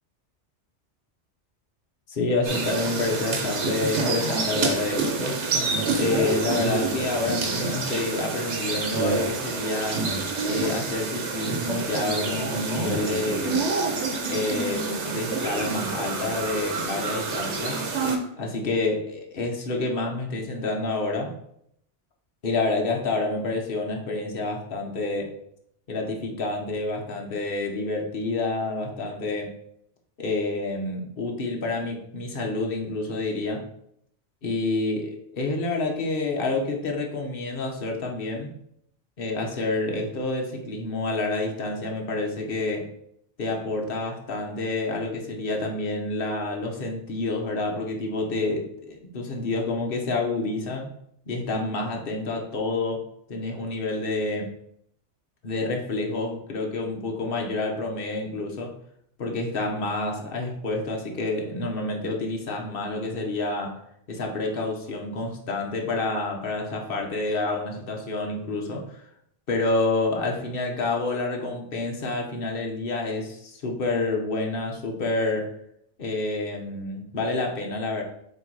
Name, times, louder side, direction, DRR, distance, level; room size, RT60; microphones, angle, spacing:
voice 1, 2.1-5.4 6.0-10.0 10.4-13.7 14.2-17.8 18.4-21.3 22.4-25.3 25.9-29.5 30.2-33.6 34.4-38.5 39.2-42.9 43.4-50.9 51.3-53.0 53.3-54.5 55.4-58.7 59.2-63.7 64.1-69.0 69.5-75.5 76.0-78.0, left 2 dB, 55° left, 0 dB, 1.2 m, -28 dB
sound 1, 2.4-18.2, right 4 dB, 80° right, 1.2 m, -27 dB
6.6 x 3.0 x 4.7 m, 0.72 s
omnidirectional pair, 1.2 m